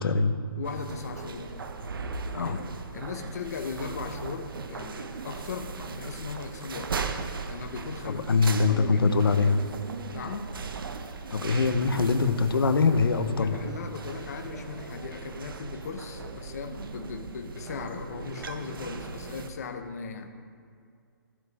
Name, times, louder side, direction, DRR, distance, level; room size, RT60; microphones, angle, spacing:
voice 1, 0.0-0.4 2.3-2.6 8.3-9.6 11.3-13.5, left 4 dB, 85° left, 10 dB, 0.9 m, -23 dB
voice 2, 0.6-1.6 2.4-2.6 2.9-6.9 7.5-8.4 8.7-9.2 10.1-10.5 13.3-20.3, left 5 dB, 45° left, 5 dB, 0.9 m, -38 dB
sound 1, 0.6-19.5, right 4 dB, 75° right, 0.8 m, -38 dB
15.0 x 5.0 x 4.1 m, 2.2 s
hypercardioid pair, 170°, 12 cm